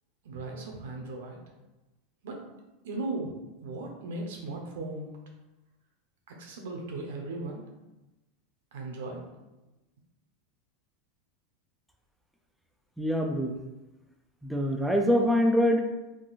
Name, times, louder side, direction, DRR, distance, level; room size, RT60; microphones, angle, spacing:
voice 1, 0.2-1.4 2.2-2.4 2.8-5.1 6.3-7.6 8.7-9.4, right 2 dB, 85° right, 1 dB, 0.7 m, -37 dB
voice 2, 13.0-13.6 14.5-15.8, equal, ahead, 2 dB, 0.3 m, -24 dB
3.6 x 2.4 x 2.4 m, 1.0 s
supercardioid pair, 135°, 0 cm